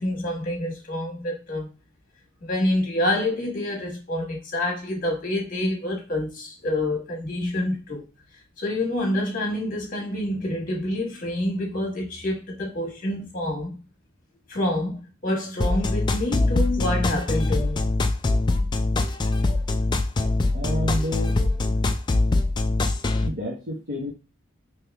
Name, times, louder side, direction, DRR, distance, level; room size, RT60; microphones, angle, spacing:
voice 1, 0.0-1.7 2.4-8.0 8.6-13.8 14.5-17.8, left 1 dB, 40° left, 1.6 m, -27 dB
sound 1, 15.6-23.3, left 2 dB, 20° left, 0.3 m, -23 dB
voice 2, 20.5-21.4 23.2-24.1, equal, 45° right, 1.1 m, -29 dB
3.5 x 3.0 x 3.4 m
head